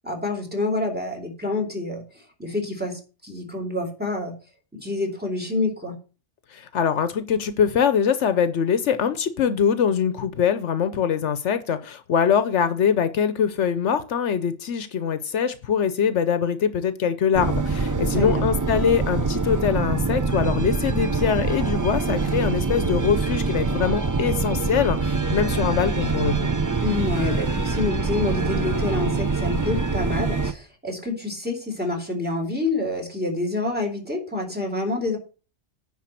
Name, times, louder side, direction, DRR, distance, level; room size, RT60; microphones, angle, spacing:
voice 1, 0.0-4.3 4.7-5.9 18.1-18.4 26.8-35.2, left 2 dB, 10° right, 2 dB, 2.7 m, -27 dB
voice 2, 6.5-26.5, left 7 dB, 75° left, 12 dB, 1.0 m, -23 dB
sound 1, 17.3-30.5, right 4 dB, 25° right, 0.4 m, -24 dB
10.0 x 4.0 x 7.5 m, 0.35 s
omnidirectional pair, 1.2 m